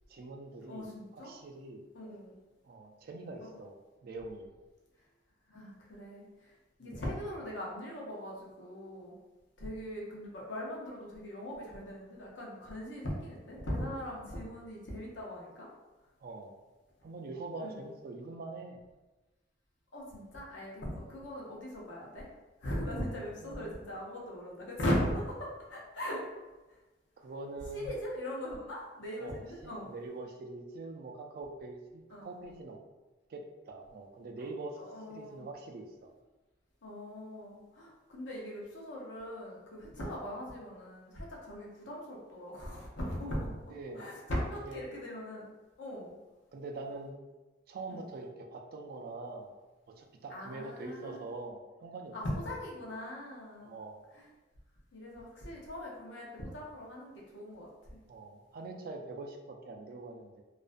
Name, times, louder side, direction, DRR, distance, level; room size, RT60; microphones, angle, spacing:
voice 1, 0.1-1.8 2.6-3.7 4.0-4.5 6.8-7.0 16.2-16.6 17.0-18.8 23.3-23.7 27.2-28.0 29.2-32.8 33.3-34.8 35.1-36.1 43.7-44.1 44.6-44.8 46.5-47.2 47.7-49.5 49.9-52.1 53.6-54.0 58.1-60.4, right 2 dB, 55° right, 3 dB, 0.3 m, -44 dB
voice 2, 0.6-1.3 1.9-2.4 3.4-3.5 5.5-6.5 6.8-9.1 9.6-15.7 17.6-17.7 19.9-22.3 22.6-26.2 27.7-29.9 32.1-32.3 34.8-35.4 36.8-45.5 45.8-46.1 47.9-48.0 50.3-51.2 52.1-53.7 54.1-54.3 54.9-58.0, equal, 75° left, -3 dB, 0.7 m, -39 dB
2.4 x 2.1 x 2.4 m, 1.1 s
head